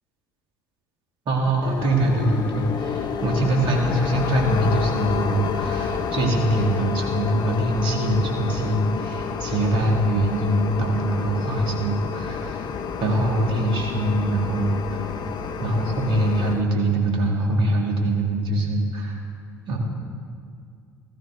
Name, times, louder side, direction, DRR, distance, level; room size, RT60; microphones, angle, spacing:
voice 1, 1.3-12.7 13.0-15.1 15.6-19.2 19.7-19.8, right 1 dB, 55° right, 0 dB, 2.5 m, -23 dB
sound 1, 1.6-16.6, left 6 dB, 45° left, 0.8 m, -29 dB
14.5 x 14.0 x 3.8 m, 2.2 s
figure-of-eight pair, 55°, 10 cm